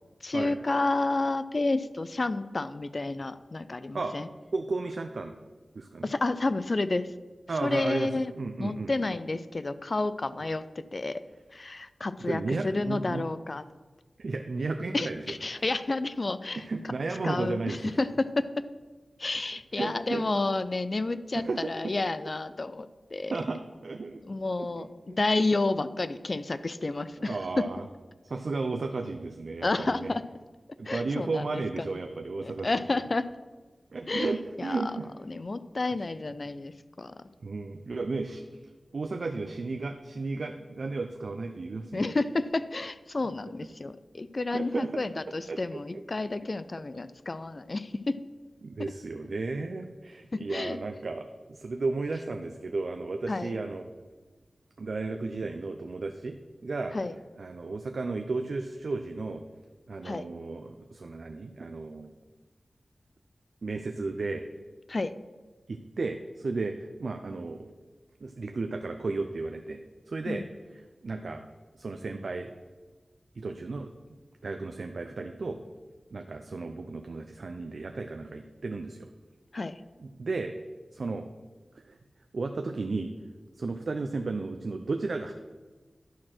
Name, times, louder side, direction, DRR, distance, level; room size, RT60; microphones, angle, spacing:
voice 1, 0.2-4.3 6.0-7.1 7.6-8.3 8.6-10.6 10.9-11.2 11.5-13.6 14.9-16.7 17.2-18.6 19.2-23.4 24.2-27.4 29.6-30.2 30.9-31.9 32.4-33.3 34.1-34.9 35.3-36.7 37.0-37.1 41.9-48.2 50.3-50.8 53.3-53.6 56.9-57.1 60.0-60.2 64.9-65.1 70.3-70.5 79.5-79.8, left 2 dB, 45° left, 14 dB, 0.4 m, -30 dB
voice 2, 4.5-5.3 5.8-6.1 7.5-8.1 8.4-8.9 12.2-13.2 14.2-15.2 16.6-18.0 19.7-20.2 21.4-21.9 23.3-24.2 24.6-25.2 27.2-27.8 28.3-30.2 30.8-32.8 33.9-35.1 36.0-36.1 37.4-38.6 38.9-42.1 44.5-44.9 45.5-45.8 48.6-51.3 51.6-53.9 54.8-56.3 56.6-56.9 57.4-59.4 59.9-62.1 63.6-64.4 65.7-67.7 68.2-69.8 70.1-70.4 71.0-71.4 71.8-72.5 73.4-74.2 74.4-75.6 76.1-79.1 80.0-80.5 80.9-81.3 81.9-82.0 82.3-83.1 83.6-85.3, right 3 dB, 75° right, 5 dB, 0.5 m, -34 dB
11.5 x 4.4 x 6.0 m, 1.3 s
wide cardioid pair, 80°, 0 cm